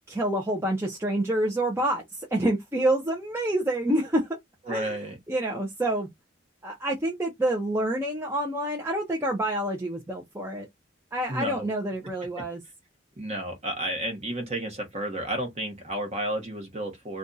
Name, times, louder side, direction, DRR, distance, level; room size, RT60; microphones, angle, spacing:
voice 1, 0.1-4.3 4.7-5.0 5.3-6.1 6.6-10.7 11.1-12.6, right 1 dB, 15° right, 0.6 m, -27 dB
voice 2, 4.7-5.2 11.3-11.7 13.2-17.2, right 1 dB, 35° right, 1.0 m, -32 dB
2.6 x 2.3 x 3.8 m
head